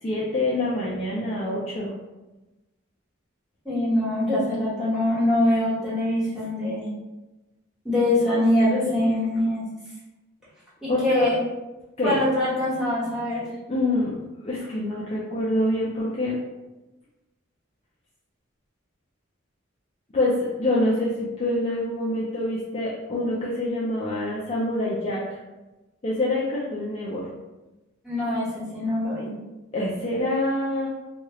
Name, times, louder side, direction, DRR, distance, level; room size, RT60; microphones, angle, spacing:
voice 1, 0.0-1.9 10.9-11.3 12.0-12.2 13.7-16.3 20.1-25.4 26.0-27.2 29.7-30.9, left 1 dB, 30° left, -7 dB, 0.4 m, -26 dB
voice 2, 3.6-6.9 7.8-9.6 10.8-11.3 12.0-13.4 28.0-29.3, left 1 dB, ahead, -11 dB, 1.4 m, -23 dB
2.9 x 2.3 x 3.0 m, 1.1 s
head